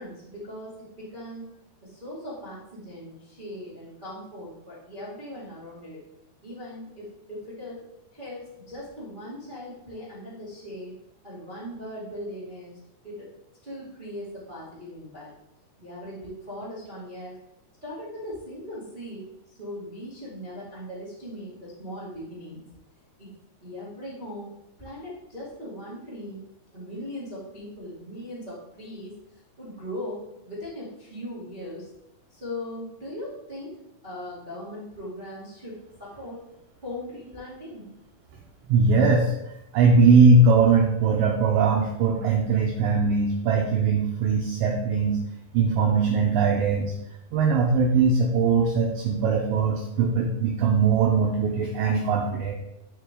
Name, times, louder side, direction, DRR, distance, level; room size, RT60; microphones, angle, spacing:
voice 1, 0.0-1.4 1.8-6.0 6.4-7.8 8.1-10.9 11.2-12.8 13.0-13.3 13.6-15.3 15.8-17.4 17.8-22.7 23.2-23.3 23.6-24.5 24.8-26.4 26.7-31.9 32.3-33.7 34.0-36.4 36.8-37.9, left 1 dB, 20° right, -8 dB, 1.6 m, -39 dB
voice 2, 38.7-39.3 39.7-45.2 45.5-46.9 47.3-52.5, right 4 dB, 75° right, 0 dB, 2.2 m, -20 dB
10.0 x 5.6 x 3.8 m, 0.88 s
omnidirectional pair, 4.5 m